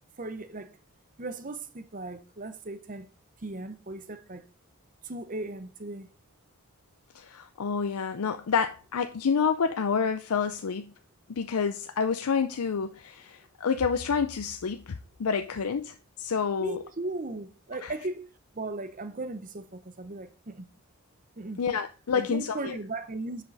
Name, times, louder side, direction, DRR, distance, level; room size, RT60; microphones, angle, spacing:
voice 1, 0.2-0.7 1.2-3.1 3.4-4.5 5.0-6.1 16.6-18.3 18.5-20.7 21.4-21.6 22.1-23.4, right 2 dB, 35° right, 0.7 m, -37 dB
voice 2, 7.1-10.9 11.4-16.8 17.8-17.9 21.6-22.8, left 6 dB, 80° left, 0.5 m, -28 dB
9.7 x 5.1 x 4.0 m
head